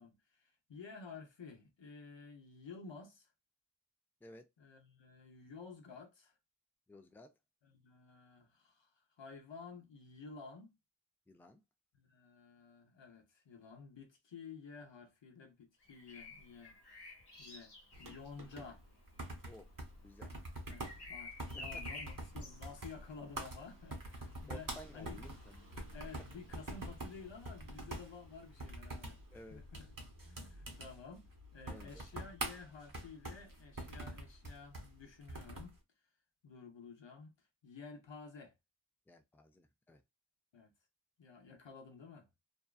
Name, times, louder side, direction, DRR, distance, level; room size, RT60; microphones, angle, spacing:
voice 1, 0.0-3.3 4.6-6.3 7.6-8.9 9.2-10.7 11.9-16.8 17.4-18.8 20.7-25.2 25.9-29.9 30.2-31.3 31.5-35.8 36.4-37.3 37.6-38.5 40.5-40.7 41.2-42.3, left 5 dB, 85° left, 0.8 m, -52 dB
voice 2, 6.9-7.3 11.3-11.6 19.5-19.7 20.0-20.3 21.5-21.6 24.5-25.9 29.3-29.6 31.7-32.2 39.1-40.0, left 1 dB, 5° left, 0.4 m, -55 dB
Bird vocalization bird call bird song, 15.8-27.6 29.3-29.5, left 2 dB, 60° left, 1.0 m, -53 dB
sound 1, 17.9-35.8, right 1 dB, 50° right, 0.9 m, -46 dB
2.7 x 2.3 x 2.3 m
wide cardioid pair, 55°, 43 cm